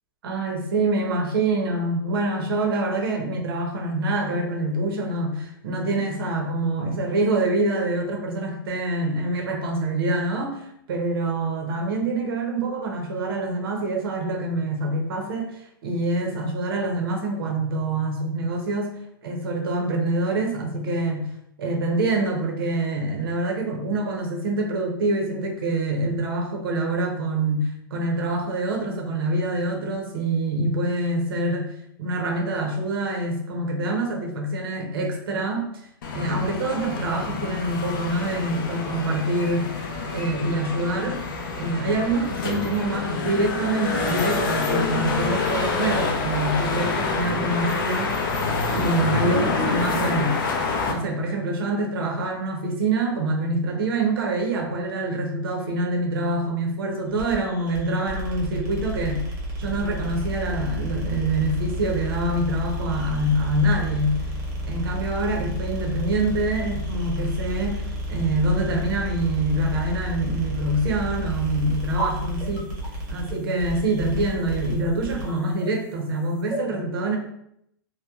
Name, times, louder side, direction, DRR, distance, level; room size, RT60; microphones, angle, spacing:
voice 1, 0.2-18.9 19.2-21.3 21.6-31.7 32.0-35.7 36.1-39.6 40.1-41.2 41.6-48.2 48.7-50.4 50.9-59.2 59.6-64.2 64.6-72.7 73.1-77.2, right 2 dB, 75° right, 2 dB, 0.6 m, -25 dB
sound 1, 36.0-50.9, left 4 dB, 60° left, 0.5 m, -27 dB
sound 2, 57.1-75.4, equal, 25° right, 0.7 m, -31 dB
sound 3, 71.3-76.6, right 3 dB, 5° left, 0.9 m, -38 dB
2.8 x 2.1 x 2.3 m, 0.76 s
supercardioid pair, 160°, 12 cm